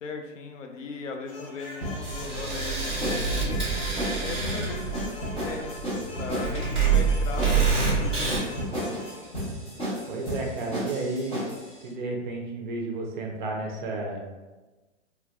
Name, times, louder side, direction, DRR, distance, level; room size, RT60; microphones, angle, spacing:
voice 1, 0.0-3.6 4.2-8.4, left 3 dB, 85° left, 4 dB, 0.7 m, -38 dB
sound 1, 1.3-9.2, left 2 dB, 30° left, 0.4 m, -43 dB
sound 2, 1.8-11.7, equal, 15° left, 1.2 m, -33 dB
sound 3, 2.0-8.4, right 5 dB, ahead, 1.4 m, -27 dB
voice 2, 10.1-11.4 11.8-14.3, right 2 dB, 40° right, 1 dB, 0.6 m, -32 dB
3.6 x 2.9 x 2.2 m, 1.2 s
hypercardioid pair, 145°, 37 cm